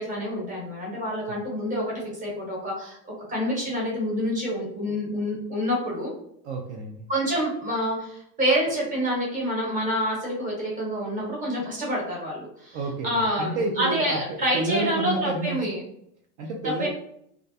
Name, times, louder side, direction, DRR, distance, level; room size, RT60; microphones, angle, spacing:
voice 1, 0.0-3.0 3.3-6.1 7.1-12.8 13.0-15.1 15.4-15.8 16.8-16.9, equal, 15° right, -4 dB, 0.8 m, -27 dB
voice 2, 6.4-7.1 12.7-15.6 16.4-16.9, right 2 dB, 55° right, 0 dB, 0.5 m, -30 dB
2.4 x 2.1 x 2.6 m, 0.71 s
supercardioid pair, 155°, 48 cm